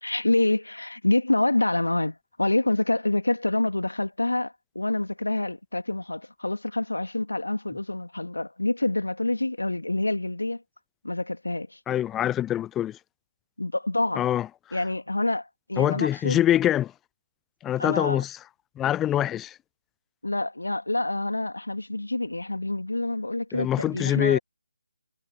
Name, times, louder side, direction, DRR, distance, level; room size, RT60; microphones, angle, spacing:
voice 1, 0.0-10.6 11.0-11.8 13.6-14.2 14.7-16.4 17.8-18.2 20.2-24.4, left 2 dB, 80° left, 2.5 m, -27 dB
voice 2, 11.9-13.0 14.2-14.5 15.8-16.9 17.6-18.4 18.8-19.6 23.5-24.4, left 12 dB, 10° left, 0.5 m, -24 dB
figure-of-eight pair, 150°, 0 cm